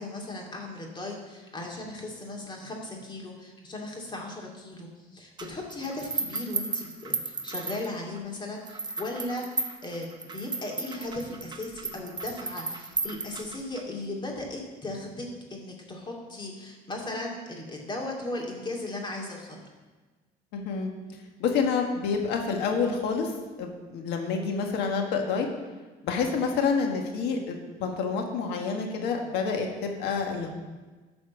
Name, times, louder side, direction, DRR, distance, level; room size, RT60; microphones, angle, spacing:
voice 1, 0.0-19.7, left 2 dB, 25° left, -1 dB, 2.4 m, -37 dB
sound 1, 5.4-8.2 8.7-13.8, right 3 dB, 25° right, 0.9 m, -34 dB
voice 2, 20.5-20.9 21.4-23.3 23.6-25.5 26.0-30.5, left 5 dB, 90° left, 3 dB, 1.5 m, -28 dB
12.0 x 4.3 x 7.0 m, 1.3 s
cardioid pair, 110°, 17 cm